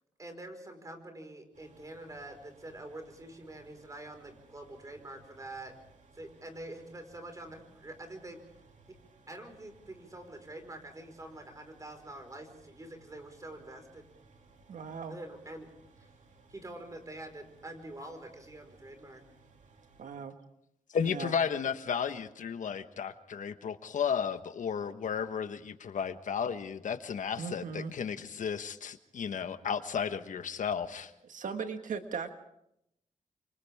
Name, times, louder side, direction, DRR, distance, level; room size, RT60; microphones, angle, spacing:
voice 1, 0.2-5.7 6.1-8.4 9.3-14.1 15.1-15.7 16.0-16.1 16.5-19.2, right 1 dB, 25° right, 6 dB, 4.7 m, -46 dB
sound 1, 1.5-20.0, right 3 dB, 70° right, 2.7 m, -61 dB
voice 2, 14.7-15.2 20.0-20.3 21.0-21.3 27.4-27.9 31.2-32.3, right 6 dB, 85° right, 7 dB, 1.6 m, -38 dB
voice 3, 20.9-31.1, left 7 dB, 80° left, 10 dB, 1.3 m, -33 dB
28.5 x 25.5 x 3.6 m, 0.79 s
wide cardioid pair, 110°, 13 cm